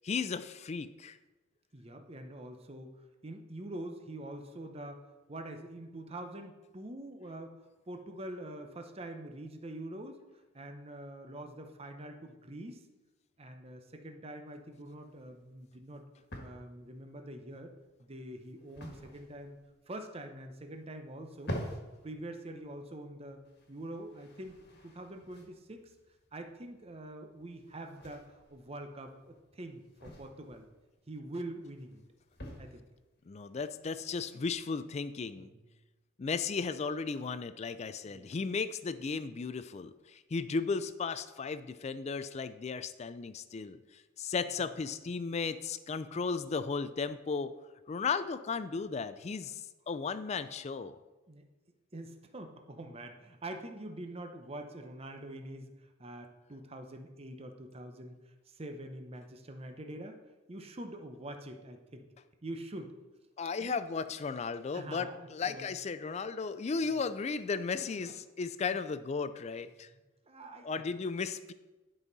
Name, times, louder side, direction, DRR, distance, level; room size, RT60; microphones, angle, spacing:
voice 1, 0.0-1.2 33.3-35.5 36.2-47.5 47.9-51.0 63.4-69.9 70.6-71.5, left 5 dB, 30° left, 13 dB, 0.3 m, -35 dB
voice 2, 1.7-2.9 3.2-5.0 5.3-7.6 7.9-10.2 10.5-12.9 13.4-16.0 16.4-17.7 18.0-19.6 19.9-21.5 22.0-23.4 23.7-25.9 26.3-30.7 31.1-32.0 32.6-32.8 35.4-35.6 38.0-38.3 51.3-51.5 51.9-60.2 60.5-62.1 62.4-63.0 63.6-63.8 64.7-65.7 66.8-67.0 67.8-68.1 68.7-68.8 70.3-70.8, right 1 dB, 30° right, 5 dB, 0.7 m, -45 dB
sound 1, 14.5-34.2, equal, 50° left, 1.6 m, -49 dB
11.0 x 5.5 x 4.0 m, 1.1 s
head